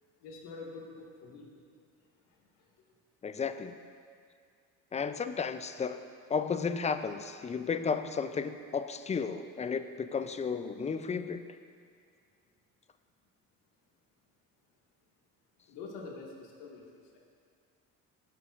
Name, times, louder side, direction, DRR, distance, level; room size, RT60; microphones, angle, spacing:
voice 1, 0.2-1.5 2.0-2.7 15.6-17.2, left 4 dB, 80° left, -2 dB, 2.0 m, -47 dB
voice 2, 3.2-3.8 4.9-6.0 6.3-11.5, left 5 dB, 20° left, 10 dB, 0.4 m, -33 dB
16.0 x 7.9 x 2.5 m, 2.3 s
supercardioid pair, 80°, 39 cm